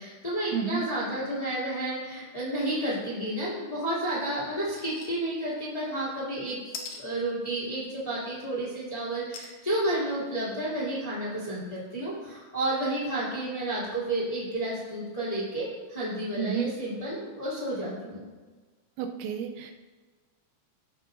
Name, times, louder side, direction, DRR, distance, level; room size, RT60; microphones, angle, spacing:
voice 1, 0.0-6.6 7.0-18.2, right 1 dB, 15° left, -8 dB, 1.7 m, -31 dB
voice 2, 0.5-0.8 16.4-16.7 19.0-19.7, right 7 dB, 85° right, 4 dB, 2.9 m, -31 dB
sound 1, 4.7-5.1 5.5-5.6 6.7-7.0 9.3-9.6 10.2-10.3 10.5-10.6, left 5 dB, 85° left, 1.9 m, -40 dB
16.0 x 6.3 x 2.7 m, 1.3 s
omnidirectional pair, 5.3 m